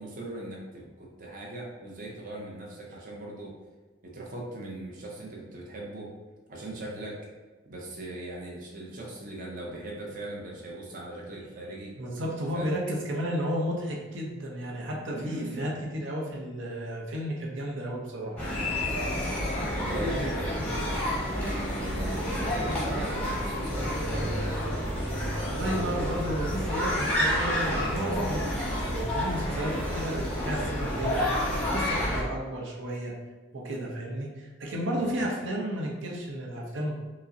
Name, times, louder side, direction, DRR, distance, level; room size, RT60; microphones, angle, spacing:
voice 1, 0.0-3.5 4.0-6.1 6.5-7.2 7.6-11.9 12.5-12.8 15.1-15.8 19.1-20.6 21.6-25.0 31.9-32.2 35.0-35.2, right 1 dB, 45° right, -2 dB, 0.6 m, -39 dB
voice 2, 12.0-18.4 25.4-31.3 31.6-33.1 33.5-37.0, equal, 85° right, -1 dB, 0.6 m, -33 dB
sound 1, 18.4-32.2, left 1 dB, 5° left, 0.8 m, -29 dB
4.8 x 2.0 x 2.6 m, 1.3 s
head